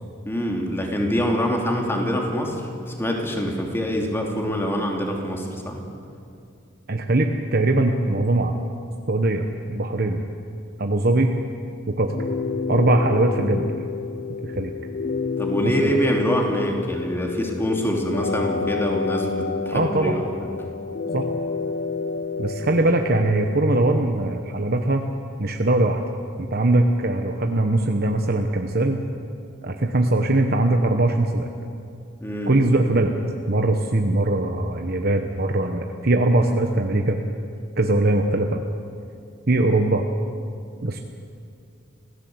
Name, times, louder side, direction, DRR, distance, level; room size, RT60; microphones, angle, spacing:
voice 1, 0.2-2.6 2.9-5.8 15.4-20.5 32.2-32.5, equal, 10° left, 0 dB, 3.0 m, -25 dB
voice 2, 6.9-8.6 9.1-10.2 10.8-11.3 11.9-12.2 12.7-13.7 14.4-14.7 15.6-16.0 19.7-20.2 21.1-21.3 22.4-25.1 25.4-26.0 26.4-29.0 29.6-31.5 32.5-33.2 33.5-37.2 37.8-38.6 39.5-40.1 40.8-41.0, right 2 dB, 50° right, 4 dB, 1.1 m, -21 dB
sound 1, 12.1-24.1, left 5 dB, 40° left, 0.6 m, -29 dB
26.0 x 16.5 x 8.0 m, 2.4 s
head